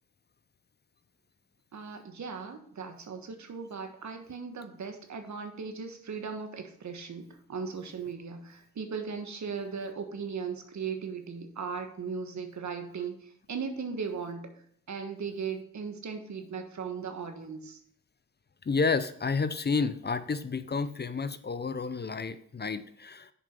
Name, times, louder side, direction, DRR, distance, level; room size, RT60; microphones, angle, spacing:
voice 1, 1.7-14.5 14.9-17.8, right 5 dB, 65° right, 6 dB, 1.3 m, -38 dB
voice 2, 18.7-23.3, left 4 dB, 35° left, 13 dB, 0.6 m, -30 dB
7.0 x 5.2 x 5.2 m, 0.63 s
supercardioid pair, 40°, 31 cm